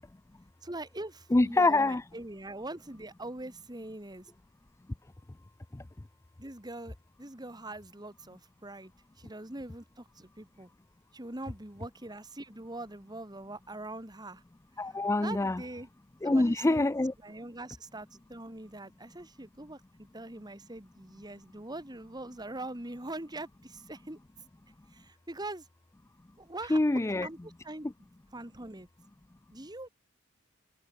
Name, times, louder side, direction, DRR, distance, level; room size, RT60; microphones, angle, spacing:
voice 1, 0.6-4.3 6.4-8.9 9.2-10.7 11.1-14.4 15.2-15.9 16.2-16.9 17.2-24.2 24.9-25.7 26.4-26.8 27.2-27.9 28.3-28.9 29.5-29.9, right 2 dB, 20° right, 2.2 m, -43 dB
voice 2, 1.3-2.0 5.7-5.8 14.8-15.6 16.2-17.1 26.7-27.3, left 2 dB, 15° left, 0.4 m, -25 dB
head